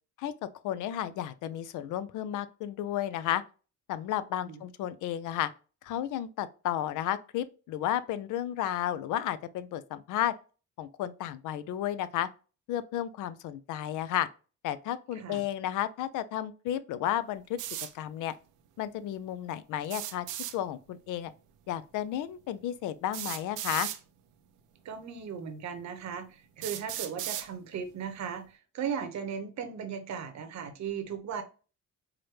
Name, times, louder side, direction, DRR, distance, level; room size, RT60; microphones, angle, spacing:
voice 1, 0.6-3.4 3.9-5.5 5.8-10.3 10.8-12.3 12.7-14.3 14.6-17.6 17.9-18.3 18.8-20.3 20.5-21.3 21.7-23.9, left 11 dB, 85° left, 0.5 m, -32 dB
sound 1, 17.6-17.9 19.8-20.6 22.0-22.1 23.1-24.0 25.0-25.1 25.8-25.9 26.6-27.5, right 12 dB, 85° right, 0.5 m, -36 dB
voice 2, 24.8-31.4, right 7 dB, 65° right, 0.9 m, -37 dB
4.7 x 2.1 x 3.0 m
cardioid pair, 90°, 30 cm